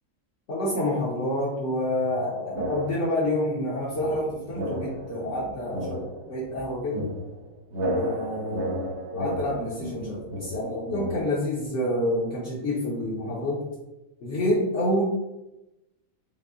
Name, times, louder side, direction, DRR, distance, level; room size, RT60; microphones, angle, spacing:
voice 1, 0.5-6.0 6.3-7.0 7.9-13.6 14.2-15.0, left 1 dB, 60° left, -6 dB, 1.1 m, -28 dB
sound 1, 2.5-3.4 3.9-11.2, equal, 65° right, 0.8 m, -33 dB
5.1 x 2.2 x 2.4 m, 0.95 s
omnidirectional pair, 1.4 m